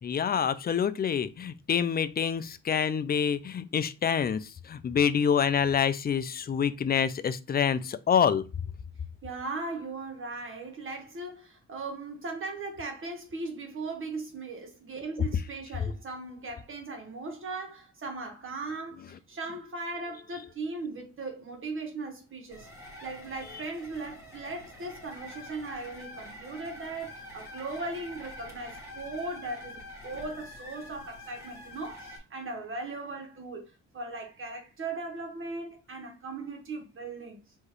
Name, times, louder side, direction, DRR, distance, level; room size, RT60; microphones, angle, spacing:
voice 1, 0.0-8.4, left 7 dB, 30° left, 0.5 m, -27 dB
voice 2, 9.2-22.7 23.0-37.4, right 3 dB, 45° right, 1.6 m, -38 dB
sound 1, 22.5-32.2, left 1 dB, 10° right, 1.7 m, -46 dB
4.5 x 3.1 x 3.1 m
cardioid pair, 90°, 30 cm